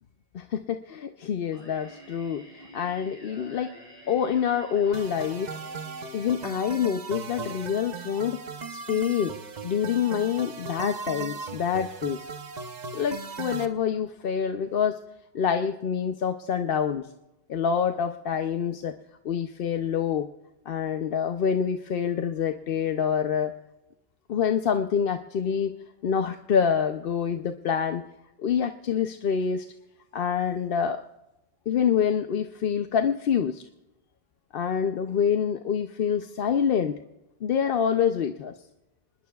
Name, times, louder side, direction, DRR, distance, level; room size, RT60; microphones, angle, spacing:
voice 1, 0.3-3.7 4.1-5.5 6.1-8.4 8.7-9.3 9.6-12.3 12.9-15.0 15.3-17.1 17.5-19.0 19.2-20.3 20.7-23.5 24.3-25.7 26.0-28.0 28.4-29.7 30.1-31.0 31.7-33.6 34.5-37.0 37.4-38.5, left 7 dB, 60° left, 7 dB, 0.8 m, -26 dB
Singing, 1.5-7.5, equal, 20° left, 7.2 m, -49 dB
sound 1, 4.9-13.6, right 4 dB, 45° right, 0.9 m, -38 dB
26.0 x 20.0 x 2.3 m, 0.95 s
omnidirectional pair, 1.1 m